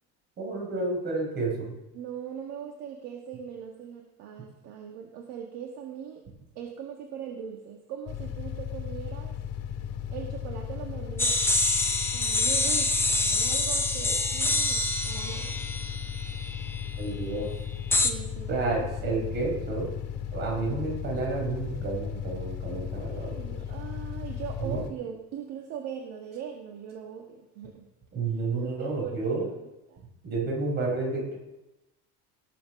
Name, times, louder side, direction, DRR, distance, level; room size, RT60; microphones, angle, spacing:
voice 1, 0.4-1.7 17.0-17.5 18.5-19.9 20.3-23.6 24.6-24.8 28.1-29.5 30.2-31.4, right 3 dB, 30° right, -1 dB, 5.1 m, -30 dB
voice 2, 1.9-6.2 6.6-9.4 10.1-11.4 12.1-15.7 18.0-18.5 22.6-27.9 28.3-30.0, right 8 dB, 50° right, 2 dB, 1.6 m, -40 dB
sound 1, 8.1-24.9, left 9 dB, 50° left, 2.0 m, -36 dB
sound 2, 11.2-16.9 17.9-18.1, left 2 dB, 5° left, 0.7 m, -26 dB
19.0 x 7.5 x 6.0 m, 0.96 s
cardioid pair, 170°, 33 cm